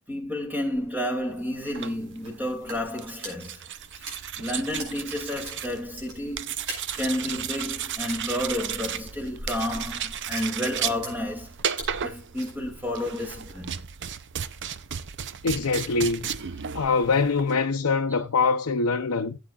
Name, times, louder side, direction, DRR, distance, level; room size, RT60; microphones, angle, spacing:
voice 1, 0.1-3.6 3.9-6.6 6.9-11.6 12.0-13.8 18.1-18.2, left 1 dB, 10° right, 2.4 m, -31 dB
sound 1, 0.7-13.7, right 2 dB, 70° right, 5.2 m, -44 dB
sound 2, 1.6-17.6, right 8 dB, 55° right, 0.6 m, -34 dB
voice 2, 15.4-16.3 16.7-19.4, left 4 dB, 70° left, 0.7 m, -24 dB
16.5 x 8.4 x 2.4 m
head